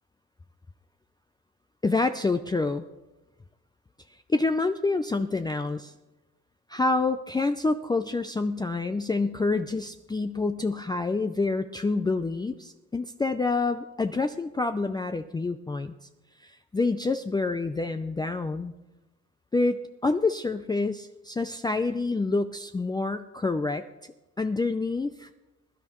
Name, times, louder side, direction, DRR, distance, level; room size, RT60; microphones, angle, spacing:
voice 1, 1.8-2.8 4.3-5.9 6.7-15.9 16.4-18.7 19.5-23.9 24.4-25.3, left 3 dB, 15° left, 8 dB, 0.4 m, -27 dB
21.0 x 11.0 x 3.1 m, 1.1 s
cardioid pair, 90°, 30 cm